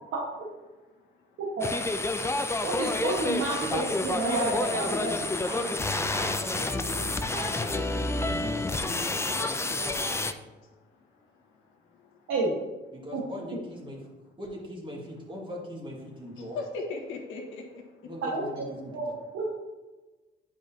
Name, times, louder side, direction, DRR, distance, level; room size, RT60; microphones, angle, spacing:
voice 1, 0.9-1.4 9.9-12.3 16.3-18.1, left 3 dB, 90° left, 1.5 m, -42 dB
sound 1, 1.6-10.3, left 2 dB, 15° left, 0.4 m, -29 dB
voice 2, 2.6-5.1 12.3-12.6 13.1-13.2 18.2-18.6 18.9-19.0 19.3-19.5, right 2 dB, 85° right, 1.5 m, -29 dB
voice 3, 3.6-4.0 4.3-9.7 12.9-14.0 14.4-16.6 18.0-18.9, equal, 25° right, 2.0 m, -39 dB
9.7 x 4.9 x 2.8 m
cardioid pair, 90°, 20 cm